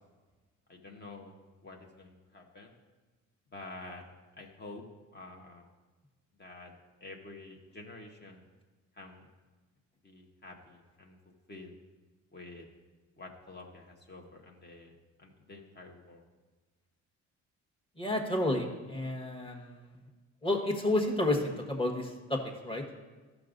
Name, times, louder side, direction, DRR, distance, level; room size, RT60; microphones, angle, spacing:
voice 1, 0.7-1.3 1.6-2.8 3.5-4.0 4.4-4.8 5.1-5.7 6.4-8.4 9.0-9.3 10.0-11.2 11.5-11.7 12.3-12.7 13.2-14.9 15.2-16.2, left 2 dB, 35° left, 1 dB, 1.2 m, -48 dB
voice 2, 18.0-19.9 20.4-22.8, left 1 dB, 20° left, 1 dB, 1.4 m, -31 dB
13.0 x 6.1 x 2.6 m, 1.3 s
cardioid pair, 90°, 30 cm